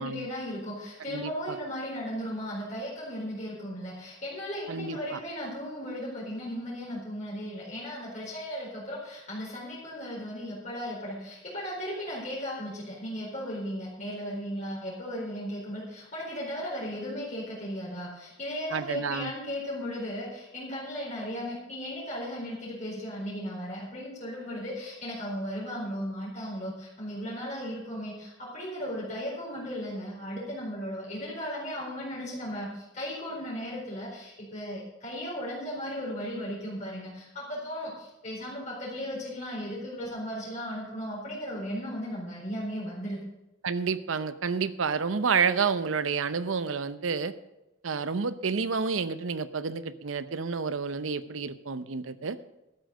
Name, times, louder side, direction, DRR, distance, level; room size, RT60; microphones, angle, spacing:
voice 1, 0.0-43.2, equal, 40° left, -6 dB, 4.3 m, -36 dB
voice 2, 1.1-1.6 4.7-5.2 18.7-19.3 43.6-47.3 47.8-52.4, right 5 dB, 80° right, 14 dB, 0.7 m, -29 dB
13.5 x 7.9 x 6.4 m, 0.94 s
head